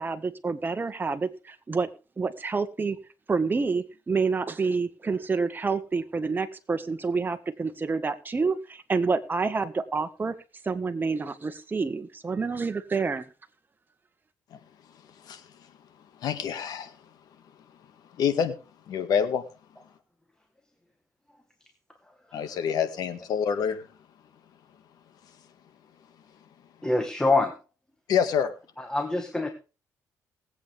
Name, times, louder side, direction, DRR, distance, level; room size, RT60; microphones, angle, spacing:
voice 1, 0.0-1.9 2.2-3.0 3.3-10.3 10.6-13.3, right 4 dB, 30° right, 8 dB, 1.6 m, -28 dB
voice 2, 16.2-16.9 18.2-18.5 18.9-19.4 22.3-23.9 28.1-28.5, left 7 dB, 80° left, 9 dB, 1.9 m, -26 dB
voice 3, 26.8-27.5 28.8-29.5, left 2 dB, 10° left, 6 dB, 1.8 m, -25 dB
19.5 x 8.5 x 3.6 m, 0.33 s
cardioid pair, 80°, 7 cm